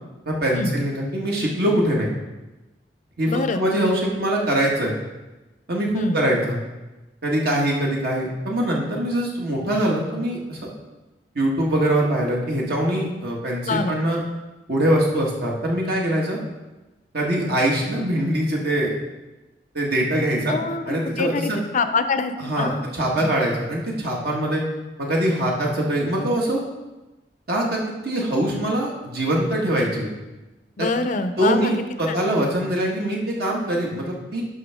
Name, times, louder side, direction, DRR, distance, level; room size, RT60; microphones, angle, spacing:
voice 1, 0.3-2.1 3.2-4.9 5.7-6.6 7.2-10.7 11.4-14.2 14.7-16.4 17.1-18.9 19.7-20.6 20.9-21.6 22.4-24.6 25.0-26.6 27.5-27.8 28.0-30.1 30.8-30.9 31.4-34.4, right 1 dB, 60° right, -2 dB, 1.7 m, -23 dB
voice 2, 3.3-3.6 5.9-6.2 13.7-14.0 20.5-22.8 23.2-23.3 30.8-31.7 32.1-32.2, left 3 dB, 45° left, 9 dB, 0.5 m, -25 dB
11.0 x 5.6 x 3.6 m, 1.1 s
head